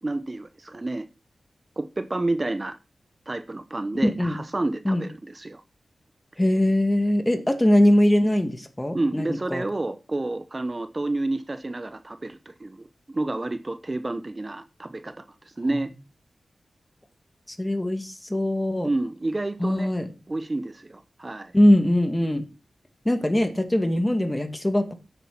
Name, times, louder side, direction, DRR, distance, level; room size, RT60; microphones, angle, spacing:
voice 1, 0.0-1.0 1.8-2.8 3.3-5.6 8.9-15.1 15.4-15.9 18.8-19.9 20.3-21.5, right 2 dB, 35° right, 0.9 m, -29 dB
voice 2, 4.0-4.4 4.8-5.0 6.4-9.6 17.5-18.9 19.6-20.1 21.5-22.4 23.1-24.9, left 1 dB, 15° left, 2.1 m, -21 dB
9.1 x 8.4 x 6.0 m
cardioid pair, 50°, 0 cm